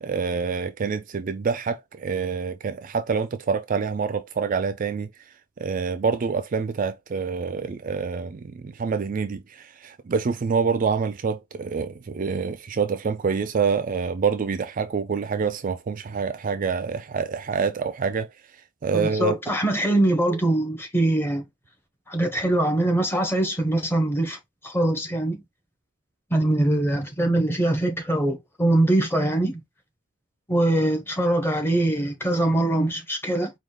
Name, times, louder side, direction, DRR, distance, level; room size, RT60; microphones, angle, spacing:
voice 1, 0.0-5.1 5.6-18.3 18.8-19.4, right 5 dB, 40° right, 0.4 m, -26 dB
voice 2, 18.9-21.4 22.1-24.4 24.6-25.4 26.3-29.6 30.5-33.5, right 1 dB, 10° left, 1.0 m, -23 dB
4.8 x 2.3 x 3.7 m
head